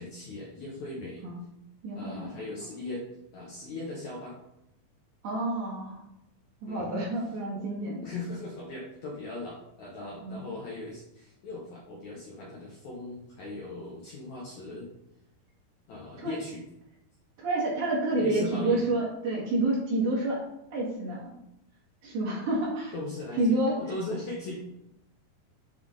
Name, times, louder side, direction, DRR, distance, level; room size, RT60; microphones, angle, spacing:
voice 1, 0.0-1.2 1.9-3.0 3.3-4.4 6.6-7.0 7.6-7.7 8.0-14.9 15.9-16.6 18.2-18.8 22.9-24.6, left 2 dB, 65° left, -4 dB, 1.9 m, -39 dB
voice 2, 1.8-2.3 5.2-6.0 6.6-8.1 10.2-10.4 16.2-16.3 17.4-20.4 20.7-21.3 22.0-22.9 23.4-23.8, right 2 dB, 60° right, -5 dB, 2.6 m, -29 dB
7.6 x 3.5 x 3.7 m, 0.83 s
omnidirectional pair, 4.6 m